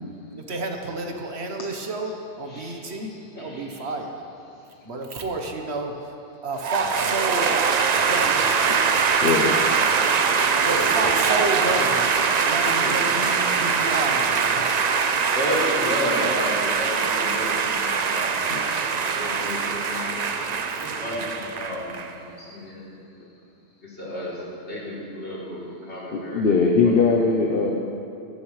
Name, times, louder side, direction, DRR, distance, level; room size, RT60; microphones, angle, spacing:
voice 1, 0.4-4.2 4.8-6.1 6.4-8.7 10.6-14.7 20.7-20.8, right 2 dB, 70° right, 3 dB, 1.3 m, -30 dB
voice 2, 3.4-3.8 10.6-11.1 12.6-12.9 15.3-18.8 19.1-20.1 20.4-20.5 20.8-22.0 22.3-22.9 23.8-24.4 24.7-27.0, left 1 dB, 75° left, -8 dB, 3.5 m, -32 dB
sound 1, 6.6-22.1, right 5 dB, 50° right, 0.6 m, -22 dB
voice 3, 9.2-9.5 18.5-18.6 26.1-27.7, left 4 dB, 55° left, 1 dB, 1.0 m, -20 dB
15.5 x 12.5 x 3.2 m, 2.7 s
omnidirectional pair, 1.2 m